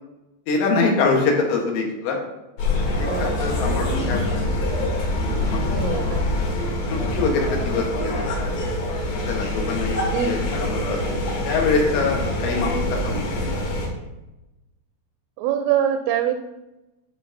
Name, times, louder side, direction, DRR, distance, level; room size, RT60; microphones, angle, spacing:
voice 1, 0.5-2.2 3.0-4.4 5.1-5.6 7.1-8.5 9.3-10.0 10.2-13.5, left 4 dB, 90° left, 0 dB, 3.5 m, -24 dB
sound 1, 2.6-13.9, left 1 dB, 70° left, 3.9 m, -25 dB
voice 2, 3.1-3.7 5.7-6.4 8.0-8.1 10.1-10.5 15.4-16.3, right 9 dB, 85° right, 7 dB, 2.7 m, -25 dB
11.0 x 5.5 x 2.6 m, 0.98 s
omnidirectional pair, 5.1 m